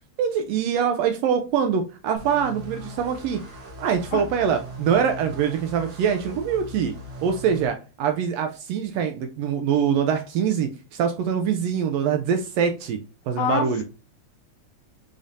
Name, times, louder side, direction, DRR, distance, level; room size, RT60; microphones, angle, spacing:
voice 1, 0.2-3.4 3.8-6.9 7.2-13.0 13.3-13.8, right 7 dB, 80° right, 1.5 m, -24 dB
sound 1, 2.1-7.7, equal, 55° right, 1.9 m, -39 dB
voice 2, 13.4-13.8, left 8 dB, 80° left, 1.9 m, -26 dB
5.1 x 3.7 x 2.7 m
omnidirectional pair, 3.3 m